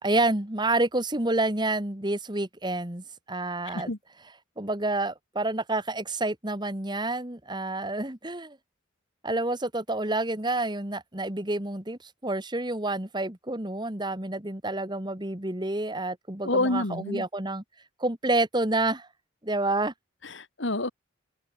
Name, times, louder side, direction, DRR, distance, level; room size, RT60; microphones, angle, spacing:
voice 1, 0.0-3.9 4.6-8.6 9.2-17.6 18.0-19.1 19.4-19.9, right 2 dB, 20° right, 1.8 m, -28 dB
voice 2, 16.4-17.3 20.2-20.9, left 2 dB, 70° left, 2.5 m, -28 dB
open air
head